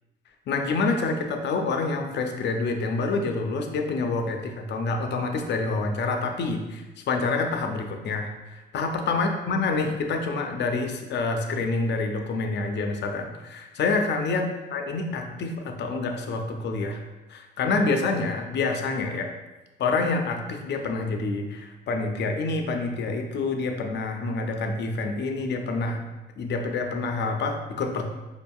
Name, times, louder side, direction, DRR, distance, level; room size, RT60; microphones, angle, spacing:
voice 1, 0.5-17.0 17.3-19.3 19.8-26.0 26.4-28.1, left 3 dB, 60° left, 4 dB, 0.5 m, -27 dB
4.9 x 2.6 x 2.3 m, 1.1 s
cardioid pair, 90°, 20 cm